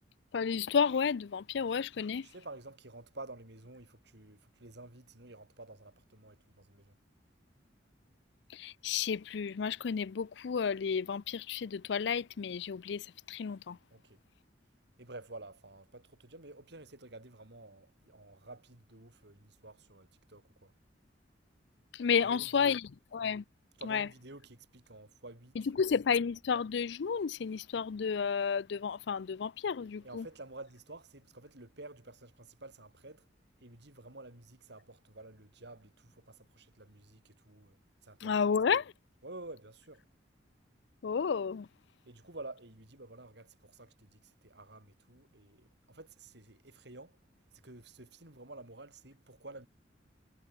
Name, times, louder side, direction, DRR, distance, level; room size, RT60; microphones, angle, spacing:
voice 1, 0.3-2.3 8.5-13.8 21.9-23.4 23.8-24.1 25.7-30.3 38.2-38.9 41.0-41.7, left 6 dB, 65° left, 0.4 m, -31 dB
voice 2, 2.2-7.0 13.9-14.2 15.0-20.7 22.2-22.8 23.8-25.8 30.0-33.3 33.6-37.8 38.0-38.5 39.2-40.1 42.0-47.2 47.5-49.7, right 2 dB, 65° right, 3.2 m, -50 dB
head